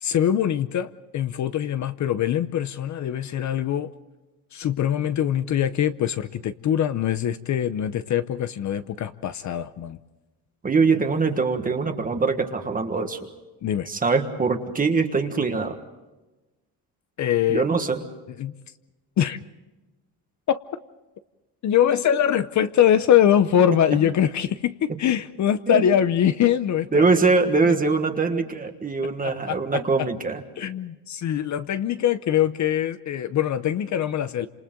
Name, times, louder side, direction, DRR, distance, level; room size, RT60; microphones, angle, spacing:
voice 1, 0.0-3.9 4.5-10.0 13.6-13.9 17.2-17.6 18.4-18.5 19.2-19.4 20.5-20.6 21.6-27.0 29.2-30.1 30.6-34.5, left 10 dB, 45° left, 12 dB, 0.8 m, -23 dB
voice 2, 10.6-13.3 13.9-15.8 17.5-18.0 25.7-25.8 26.9-30.4, right 4 dB, 20° right, 5 dB, 1.5 m, -22 dB
29.5 x 27.5 x 3.8 m, 1.1 s
cardioid pair, 165°, 40 cm